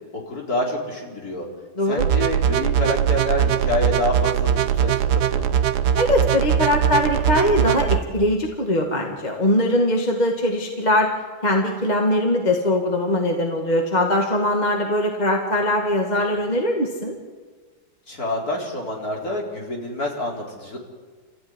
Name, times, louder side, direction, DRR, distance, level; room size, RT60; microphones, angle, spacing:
voice 1, 0.1-1.5 1.9-5.6 18.1-20.8, left 1 dB, 45° left, -2 dB, 4.9 m, -27 dB
sound 1, 2.0-8.0, right 9 dB, 60° right, 1.2 m, -21 dB
voice 2, 6.0-11.1 11.4-17.1, left 1 dB, 20° left, 1 dB, 2.0 m, -21 dB
29.0 x 15.0 x 9.8 m, 1.5 s
omnidirectional pair, 2.3 m